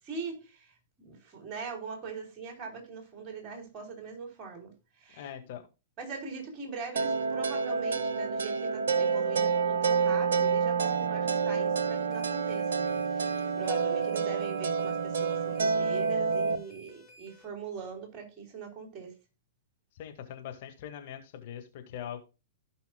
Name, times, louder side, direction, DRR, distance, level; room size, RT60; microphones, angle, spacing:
voice 1, 0.0-5.3 6.0-19.2, right 5 dB, 30° right, 3.4 m, -42 dB
voice 2, 5.2-5.6 19.9-22.2, left 9 dB, 50° left, 1.8 m, -42 dB
sound 1, 7.0-16.6, right 5 dB, 65° right, 0.7 m, -28 dB
sound 2, 12.1-17.4, right 1 dB, 10° left, 4.9 m, -55 dB
16.0 x 5.6 x 2.3 m
figure-of-eight pair, 105°, 0 cm